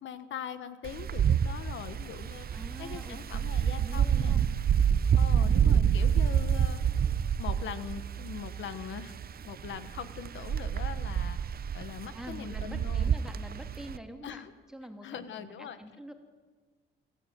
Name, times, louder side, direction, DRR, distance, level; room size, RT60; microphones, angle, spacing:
voice 1, 0.0-4.4 5.2-6.8 7.4-9.2 9.4-11.4 11.7-13.1 14.2-14.5 15.0-15.8, left 8 dB, 70° left, 12 dB, 1.3 m, -41 dB
Wind, 0.8-14.0, right 8 dB, 50° right, 0.9 m, -28 dB
voice 2, 2.5-4.5 12.1-16.1, equal, 5° right, 5 dB, 2.8 m, -46 dB
26.0 x 13.5 x 9.4 m, 1.5 s
cardioid pair, 90°, 20 cm